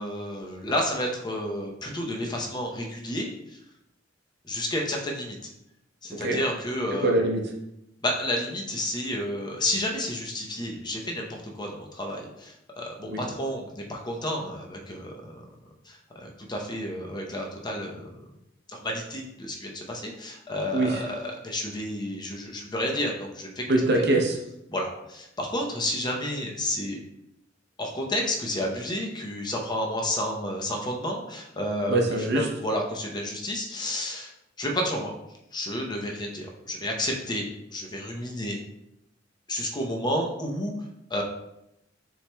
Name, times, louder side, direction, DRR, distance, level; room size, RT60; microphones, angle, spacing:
voice 1, 0.0-3.6 4.4-5.4 6.0-7.1 8.0-15.4 15.9-18.0 18.7-23.6 24.7-27.0 27.8-32.0 32.3-34.3 34.6-35.1 35.5-38.6 39.5-40.7 41.1-41.2, left 1 dB, 25° left, 0 dB, 0.7 m, -31 dB
voice 2, 7.0-7.4 13.1-13.2 20.7-21.0 23.7-24.4 31.9-32.5, right 2 dB, 60° right, 1 dB, 0.7 m, -23 dB
6.9 x 3.1 x 2.2 m, 0.85 s
head